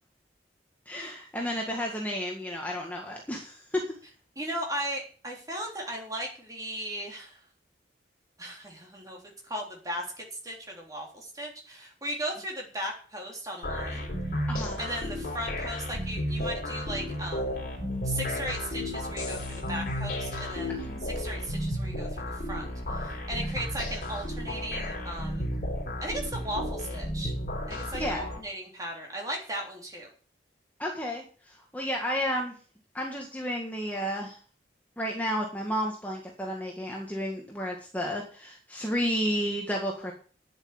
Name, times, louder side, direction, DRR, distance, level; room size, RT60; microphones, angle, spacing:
voice 1, 0.9-3.8 14.5-14.8 20.7-21.0 27.9-28.2 30.8-32.5 32.9-34.4 35.0-40.1, equal, 10° left, 0 dB, 1.7 m, -32 dB
voice 2, 4.4-7.4 8.4-14.1 14.8-17.6 18.0-22.7 22.9-25.5 26.0-27.3 27.7-30.1, right 1 dB, 20° right, 0 dB, 3.5 m, -37 dB
sound 1, 13.6-28.4, left 1 dB, 50° left, 3.6 m, -33 dB
10.0 x 8.0 x 8.0 m, 0.42 s
head